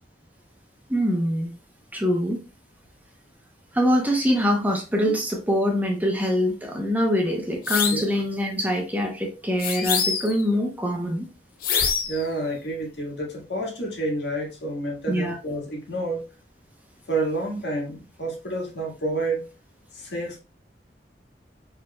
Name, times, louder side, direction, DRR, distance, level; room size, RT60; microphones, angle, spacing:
voice 1, 0.9-1.5 1.9-2.4 3.7-11.3 15.1-15.4, equal, 10° right, 2 dB, 0.7 m, -24 dB
sound 1, 7.6-8.1 9.6-10.4 11.6-12.2, left 6 dB, 55° left, 0.6 m, -25 dB
voice 2, 12.1-16.2 17.1-19.5 19.9-20.4, right 2 dB, 85° left, -1 dB, 1.6 m, -29 dB
4.4 x 4.3 x 2.2 m, 0.31 s
head